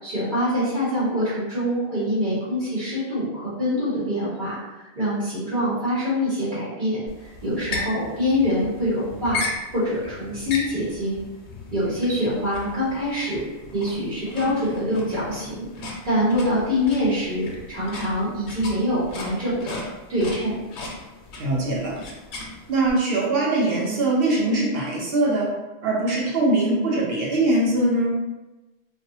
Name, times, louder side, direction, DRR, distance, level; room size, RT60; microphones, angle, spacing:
voice 1, 0.0-7.0 7.4-9.4 9.7-11.2 11.7-13.4 13.7-15.7 16.0-19.8 20.1-20.6, equal, 45° right, -11 dB, 1.2 m, -25 dB
sound 1, 7.1-22.9, left 2 dB, 90° left, 0.9 m, -36 dB
voice 2, 21.4-21.9 22.7-25.5 25.8-28.1, right 2 dB, 65° right, -4 dB, 0.9 m, -22 dB
2.6 x 2.1 x 2.7 m, 1.1 s
omnidirectional pair, 1.1 m